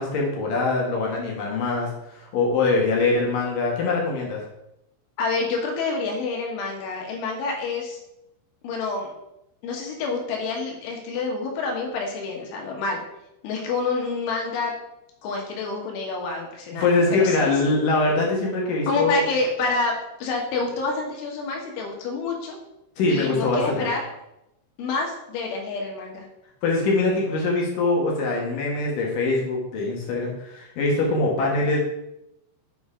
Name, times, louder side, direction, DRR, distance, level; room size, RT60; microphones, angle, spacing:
voice 1, 0.0-4.4 16.8-19.2 23.0-23.9 26.6-31.8, left 3 dB, 65° left, -2 dB, 2.2 m, -23 dB
voice 2, 5.2-8.0 8.6-9.1 9.6-13.0 13.4-14.7 15.2-17.7 18.9-22.6 23.1-24.0 24.8-26.3, left 3 dB, 80° left, 0 dB, 3.8 m, -28 dB
7.9 x 4.1 x 4.9 m, 0.85 s
omnidirectional pair, 5.5 m